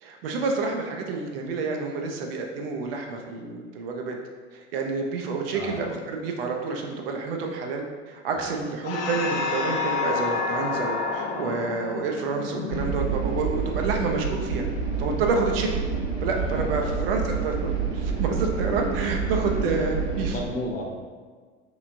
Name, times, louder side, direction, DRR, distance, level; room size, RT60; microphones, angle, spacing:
voice 1, 0.0-4.2 4.5-14.6 15.0-15.8 16.2-20.3, right 4 dB, 50° right, 2 dB, 0.5 m, -29 dB
sound 1, 8.8-13.6, left 4 dB, 45° left, 0.5 m, -29 dB
sound 2, 12.7-20.3, right 5 dB, 80° right, 1.5 m, -28 dB
voice 2, 16.3-17.1 20.3-20.8, left 1 dB, 75° left, -1 dB, 0.8 m, -34 dB
3.2 x 3.0 x 2.6 m, 1.5 s
figure-of-eight pair, 80°, 38 cm